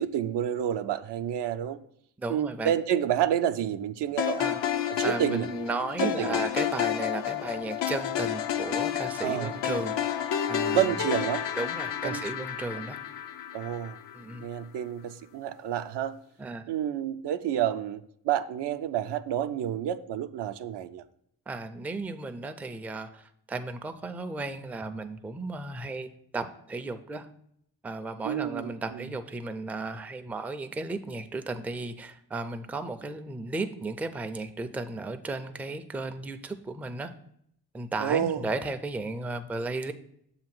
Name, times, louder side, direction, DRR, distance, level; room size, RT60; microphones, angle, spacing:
voice 1, 0.0-1.8 2.3-4.4 4.9-5.5 6.0-6.4 9.2-9.8 10.7-11.5 12.0-12.2 13.5-14.0 14.4-16.2 16.7-21.0 28.2-29.0 38.0-38.4, right 10 dB, 75° right, 9 dB, 0.5 m, -29 dB
voice 2, 2.2-2.7 4.4-4.6 5.0-10.1 10.5-10.9 11.6-13.0 14.1-14.5 16.4-16.7 21.5-27.3 27.8-37.1 37.7-39.9, right 3 dB, 5° right, 7 dB, 0.3 m, -35 dB
sound 1, 4.2-14.4, left 10 dB, 80° left, 0.6 m, -30 dB
7.0 x 2.9 x 5.9 m, 0.72 s
cardioid pair, 70°, 42 cm